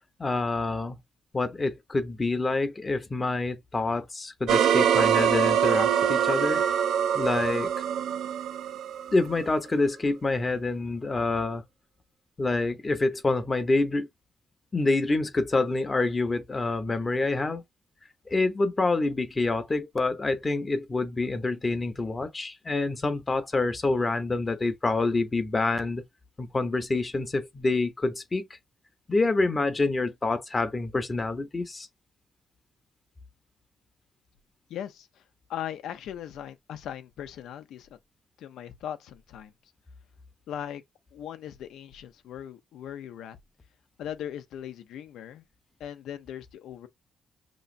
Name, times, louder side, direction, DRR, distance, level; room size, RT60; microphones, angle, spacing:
voice 1, 0.2-1.0 1.3-6.6 7.1-7.7 9.1-11.6 12.4-14.1 14.7-17.6 18.3-26.0 26.4-28.5 29.1-31.9, left 3 dB, 30° left, 0.8 m, -27 dB
sound 1, 4.5-9.5, right 9 dB, 85° right, 0.4 m, -24 dB
voice 2, 34.7-35.2 35.5-38.0 38.4-39.5 40.5-40.8 41.1-43.4 44.0-45.4 45.8-46.9, left 10 dB, 90° left, 0.6 m, -39 dB
5.6 x 3.1 x 2.5 m
cardioid pair, 85°, 0 cm